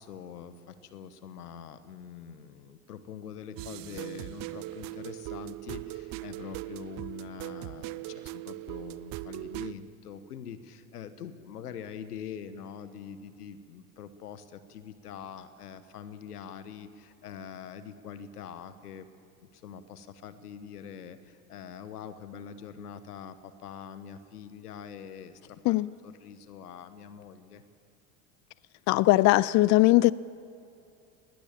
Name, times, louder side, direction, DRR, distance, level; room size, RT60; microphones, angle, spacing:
voice 1, 0.0-19.1 19.4-25.8 26.0-27.6, left 7 dB, 85° left, 1.4 m, -44 dB
sound 1, 3.6-9.7, right 18 dB, 50° right, 0.7 m, -39 dB
voice 2, 28.9-30.1, left 18 dB, 40° left, 0.5 m, -20 dB
20.5 x 18.5 x 7.5 m
hypercardioid pair, 75°, 45 cm